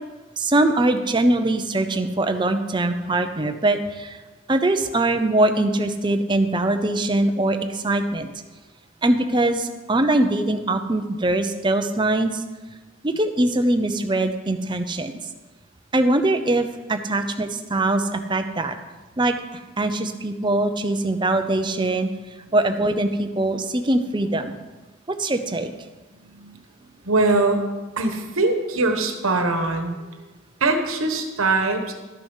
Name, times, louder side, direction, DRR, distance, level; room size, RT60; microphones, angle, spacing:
voice 1, 0.4-4.2 4.5-8.3 9.0-12.4 13.0-15.1 15.9-18.7 19.2-19.4 19.8-22.1 22.5-24.6 25.1-25.7, right 2 dB, 20° right, 7 dB, 0.6 m, -22 dB
voice 2, 26.1-26.6 27.0-27.7 28.0-30.0 30.6-31.9, right 3 dB, 85° right, 5 dB, 1.2 m, -22 dB
12.5 x 6.8 x 5.5 m, 1.2 s
head